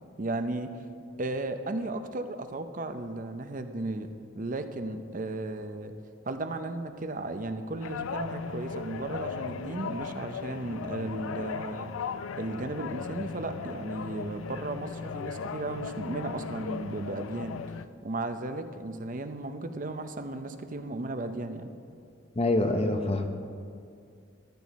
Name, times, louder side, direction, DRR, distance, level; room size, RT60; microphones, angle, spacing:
voice 1, 0.2-0.7 1.2-4.1 4.3-5.9 6.3-11.9 12.4-17.6 18.0-21.7, right 2 dB, 40° right, 8 dB, 0.6 m, -35 dB
sound 1, 7.8-17.9, left 5 dB, 85° left, 0.4 m, -37 dB
voice 2, 22.4-23.3, left 2 dB, 30° left, 6 dB, 0.7 m, -25 dB
13.5 x 12.0 x 4.2 m, 2.3 s
head